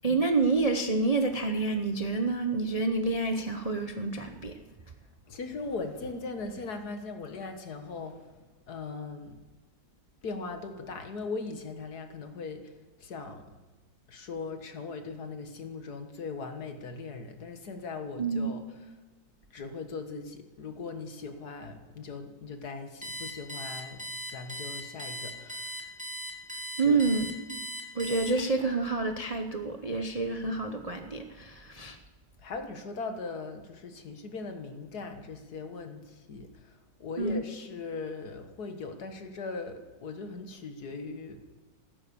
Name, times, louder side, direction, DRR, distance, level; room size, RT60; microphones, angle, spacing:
voice 1, 0.0-4.6 18.2-18.5 26.8-27.6 27.9-32.0 37.2-37.4, right 3 dB, 35° right, 5 dB, 0.6 m, -28 dB
voice 2, 5.3-9.4 10.2-12.7 13.0-13.5 14.1-18.6 19.5-24.0 24.3-25.8 26.8-27.0 32.4-41.4, left 4 dB, 60° left, 6 dB, 1.9 m, -39 dB
Alarm, 23.0-28.7, equal, 5° right, 2.2 m, -38 dB
15.0 x 12.5 x 7.1 m, 1.3 s
omnidirectional pair, 2.0 m